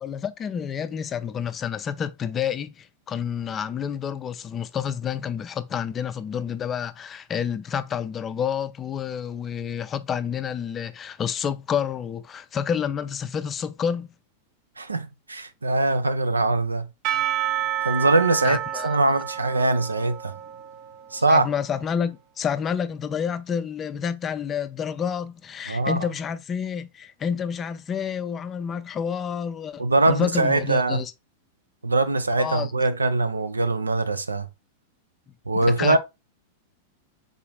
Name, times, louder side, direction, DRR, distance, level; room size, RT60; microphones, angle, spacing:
voice 1, 0.0-14.1 18.4-18.9 21.3-31.1 32.4-32.7 35.8-36.0, left 7 dB, 25° left, 0.4 m, -29 dB
voice 2, 14.8-16.9 17.8-20.4 21.1-21.5 25.7-26.1 29.8-31.0 31.8-34.5 35.5-36.0, right 2 dB, 85° right, 0.5 m, -22 dB
Percussion / Church bell, 17.0-21.5, right 11 dB, 45° right, 0.6 m, -30 dB
4.0 x 3.8 x 3.0 m
figure-of-eight pair, 95°, 0 cm